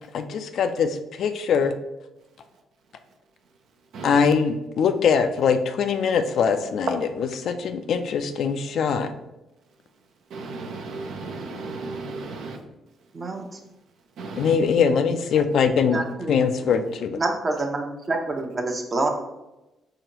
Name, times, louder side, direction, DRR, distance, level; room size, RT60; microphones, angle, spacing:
voice 1, 0.1-1.7 4.0-9.1 14.4-16.0 16.3-17.2, left 6 dB, 65° left, 8 dB, 0.3 m, -22 dB
voice 2, 10.3-12.6 14.2-14.5, right 3 dB, 70° right, 4 dB, 0.6 m, -34 dB
voice 3, 13.1-13.4 15.9-16.4 16.6-16.7 17.1-19.1, right 2 dB, 40° right, 3 dB, 0.8 m, -27 dB
4.9 x 2.5 x 2.9 m, 0.97 s
supercardioid pair, 55°, 0 cm